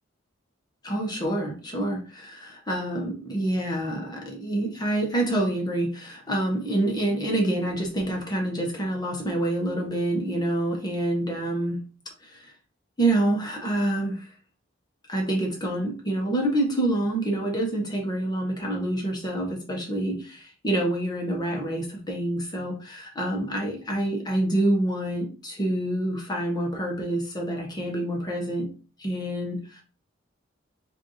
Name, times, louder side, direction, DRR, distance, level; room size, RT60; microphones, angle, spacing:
voice 1, 0.8-11.8 12.2-12.5 13.0-14.3 15.1-28.7 29.0-29.8, right 1 dB, 20° left, 0 dB, 1.1 m, -27 dB
5.0 x 2.7 x 3.0 m, 0.37 s
head